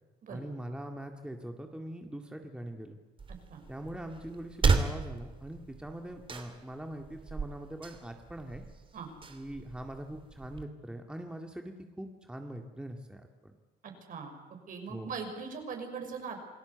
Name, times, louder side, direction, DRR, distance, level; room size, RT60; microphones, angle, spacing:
voice 1, 0.3-3.0 3.7-8.6 9.3-13.5 14.9-15.1, right 1 dB, 5° right, 4 dB, 2.1 m, -42 dB
sound 1, 3.2-10.6, right 4 dB, 30° right, 2.9 m, -34 dB
voice 2, 13.8-14.3 14.7-16.4, right 5 dB, 55° right, 5 dB, 6.1 m, -40 dB
28.0 x 18.5 x 8.1 m, 1.2 s
cardioid pair, 110°, 17 cm